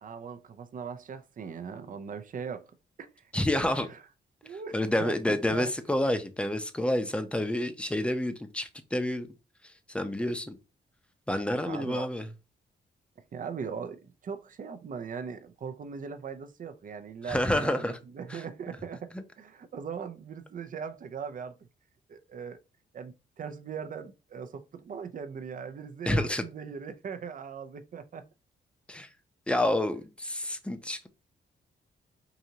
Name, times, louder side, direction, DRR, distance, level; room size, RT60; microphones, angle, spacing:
voice 1, 0.0-2.7 3.0-3.3 3.9-4.0 4.4-4.7 5.0-5.7 11.6-12.1 13.3-21.6 22.1-22.6 22.9-28.2, right 6 dB, 45° right, 0.5 m, -40 dB
voice 2, 3.3-3.9 4.7-9.3 9.9-10.6 11.3-12.3 17.3-18.0 18.3-18.4 26.1-26.4 28.9-29.1 29.5-31.1, left 1 dB, 5° left, 0.6 m, -28 dB
4.8 x 2.7 x 2.8 m
cardioid pair, 90°, 19 cm